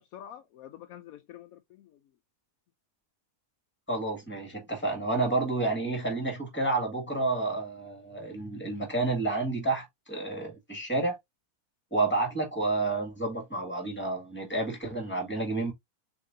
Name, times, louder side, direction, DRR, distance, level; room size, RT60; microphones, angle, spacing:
voice 1, 0.0-2.0, left 11 dB, 75° left, 1.0 m, -47 dB
voice 2, 3.9-11.2 11.9-15.7, right 2 dB, 5° left, 1.9 m, -30 dB
6.5 x 3.1 x 2.6 m
omnidirectional pair, 1.6 m